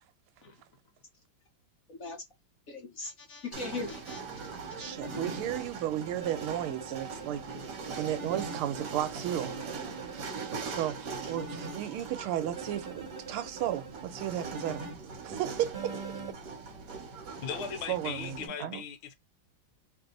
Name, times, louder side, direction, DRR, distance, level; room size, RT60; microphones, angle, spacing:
voice 1, 1.9-2.2 2.7-4.2 4.8-4.9, left 3 dB, 50° left, 1.1 m, -39 dB
sound 1, 3.5-18.5, right 5 dB, 60° right, 1.5 m, -41 dB
sound 2, 4.5-5.4 6.2-8.6 9.4-11.8 12.6-15.0 15.7-16.3, right 3 dB, 35° right, 1.2 m, -43 dB
voice 2, 4.5-7.4 8.0-9.7 10.0-14.9 15.2-16.0 17.9-18.8, right 11 dB, 80° right, 1.5 m, -34 dB
voice 3, 17.4-19.1, left 8 dB, 75° left, 1.4 m, -38 dB
3.4 x 2.7 x 3.7 m
omnidirectional pair, 2.4 m